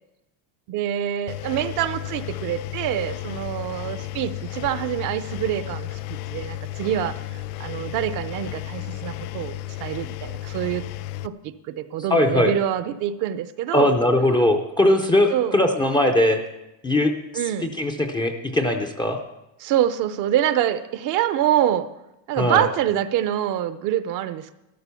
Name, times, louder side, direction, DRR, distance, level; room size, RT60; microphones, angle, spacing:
voice 1, 0.7-10.8 11.2-13.9 15.3-15.6 17.3-17.7 19.6-21.9 22.3-24.5, right 11 dB, 40° right, 13 dB, 0.6 m, -25 dB
Engine, 1.3-11.3, left 14 dB, 75° left, 0.6 m, -33 dB
voice 2, 12.1-12.5 13.7-16.4 16.8-17.1 17.6-19.2 22.4-22.7, left 1 dB, 10° left, 4 dB, 0.4 m, -20 dB
13.0 x 12.5 x 6.9 m, 0.94 s
cardioid pair, 165°, 49 cm